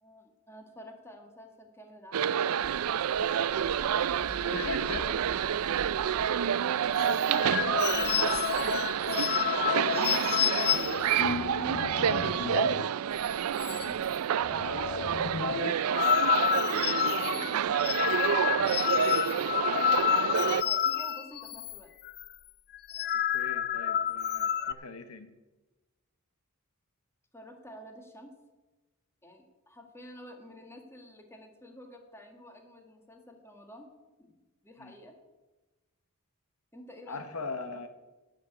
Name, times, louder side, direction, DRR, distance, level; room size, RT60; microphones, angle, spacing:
voice 1, 0.0-2.4 3.4-5.5 6.9-8.9 9.2-10.7 14.4-14.8 16.4-19.0 19.5-20.2 20.5-21.9 27.3-28.3 29.2-33.9 34.2-35.2 36.7-37.9, equal, 10° left, 4 dB, 1.6 m, -50 dB
sound 1, 2.1-20.6, right 9 dB, 70° right, 0.4 m, -29 dB
sound 2, 2.6-9.9, right 1 dB, 20° right, 2.5 m, -48 dB
voice 2, 4.5-5.1 9.6-11.0 11.8-12.5 16.9-17.3 23.1-25.3 34.8-34.9 37.1-37.9, left 3 dB, 70° left, 9 dB, 0.9 m, -40 dB
sound 3, 6.9-12.9 13.2-13.3 13.6-14.2 14.4-21.8 22.0-22.3 22.7-24.7, left 9 dB, 45° left, 0.4 m, -30 dB
11.5 x 6.7 x 8.5 m, 1.1 s
head